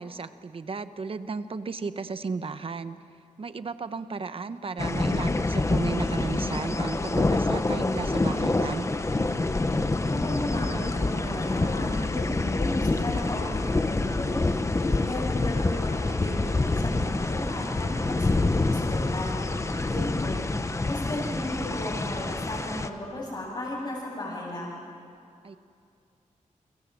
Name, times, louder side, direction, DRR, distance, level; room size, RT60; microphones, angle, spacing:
voice 1, 0.0-3.0 3.4-8.9 19.7-20.1 25.4-25.6, right 4 dB, 45° right, 11 dB, 1.0 m, -34 dB
sound 1, 4.8-22.9, left 2 dB, 20° left, 1.1 m, -27 dB
voice 2, 9.9-14.4 14.8-19.4 19.9-20.4 20.8-24.8, left 1 dB, 40° left, -8 dB, 7.2 m, -35 dB
29.5 x 24.0 x 7.7 m, 2.5 s
wide cardioid pair, 130°, 13 cm